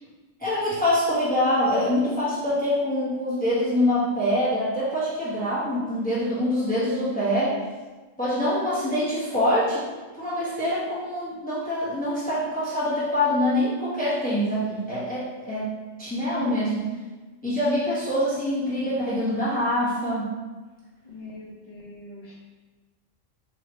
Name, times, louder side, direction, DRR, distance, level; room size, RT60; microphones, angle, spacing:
voice 1, 0.4-7.6 8.2-9.9 10.2-15.7 16.0-16.9 17.4-20.3, left 1 dB, 5° left, -10 dB, 1.0 m, -25 dB
voice 2, 21.0-22.4, left 2 dB, 35° left, -4 dB, 0.7 m, -42 dB
4.8 x 2.9 x 3.1 m, 1.3 s
omnidirectional pair, 1.3 m